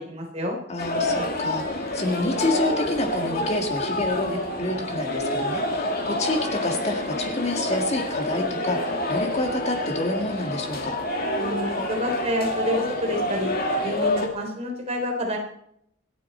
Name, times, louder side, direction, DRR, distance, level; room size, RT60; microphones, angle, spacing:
voice 1, 0.0-0.6 11.4-13.5 13.8-15.4, left 1 dB, 30° right, 1 dB, 3.5 m, -28 dB
voice 2, 0.7-11.0, left 1 dB, 30° left, 3 dB, 1.9 m, -28 dB
sound 1, 0.8-14.3, left 1 dB, 45° left, 2.6 m, -27 dB
27.0 x 9.3 x 4.4 m, 0.74 s
head